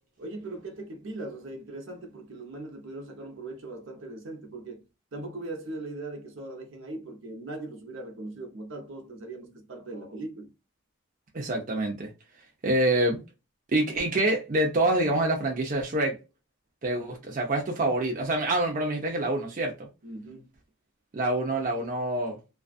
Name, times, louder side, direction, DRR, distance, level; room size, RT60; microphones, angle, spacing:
voice 1, 0.2-10.5 20.0-20.5, right 2 dB, 70° right, 0.8 m, -39 dB
voice 2, 11.3-12.1 12.6-13.2 13.7-16.2 16.8-19.7 21.1-22.4, right 1 dB, 40° right, 0.5 m, -26 dB
2.4 x 2.3 x 2.3 m
head